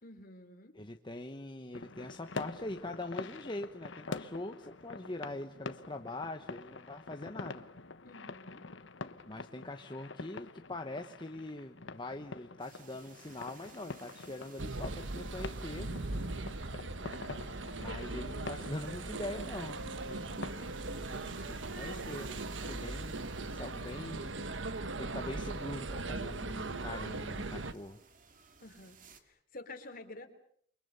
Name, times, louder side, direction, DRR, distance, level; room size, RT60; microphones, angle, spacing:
voice 1, 0.0-0.8 8.0-8.6 21.0-21.6 28.6-30.3, left 2 dB, 50° left, 7 dB, 3.7 m, -50 dB
voice 2, 0.7-7.6 9.3-15.9 17.8-20.4 21.5-24.4 25.0-28.0, left 2 dB, 25° left, 5 dB, 1.1 m, -43 dB
sound 1, 1.7-20.7, left 3 dB, 80° left, 1.2 m, -46 dB
sound 2, 12.6-29.2, right 5 dB, 45° right, 2.8 m, -59 dB
sound 3, 14.6-27.7, right 2 dB, 85° right, 1.3 m, -39 dB
29.5 x 24.0 x 7.0 m, 0.64 s
head